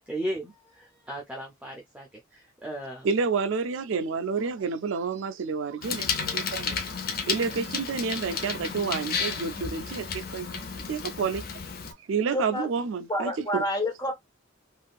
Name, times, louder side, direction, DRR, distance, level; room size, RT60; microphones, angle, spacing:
voice 1, 0.0-3.1, right 1 dB, 5° right, 0.5 m, -36 dB
voice 2, 3.0-6.8 7.3-10.6 10.9-11.4 12.1-13.6, right 5 dB, 65° right, 0.4 m, -29 dB
Bicycle, 5.8-11.9, left 5 dB, 45° left, 0.6 m, -32 dB
voice 3, 12.3-12.7 13.1-14.1, left 1 dB, 20° left, 1.0 m, -28 dB
3.5 x 2.5 x 2.3 m
head